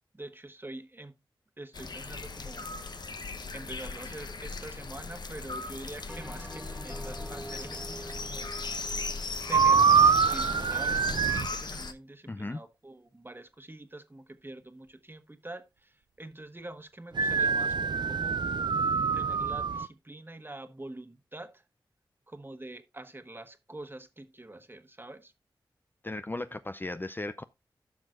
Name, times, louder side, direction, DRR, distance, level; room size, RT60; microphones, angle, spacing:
voice 1, 0.1-1.1 1.6-2.7 3.5-8.5 9.5-17.7 18.0-18.4 19.1-21.6 22.3-25.3, right 2 dB, 25° right, 1.3 m, -45 dB
sound 1, 1.7-11.9, left 3 dB, 55° left, 0.9 m, -38 dB
Bell, 6.1-10.7, right 1 dB, 5° right, 0.9 m, -46 dB
sound 2, 9.5-11.5 17.1-19.9, right 6 dB, 60° right, 0.4 m, -24 dB
voice 2, 12.3-12.6 26.0-27.4, left 2 dB, 25° left, 0.4 m, -36 dB
14.5 x 5.8 x 2.5 m
cardioid pair, 45°, 9 cm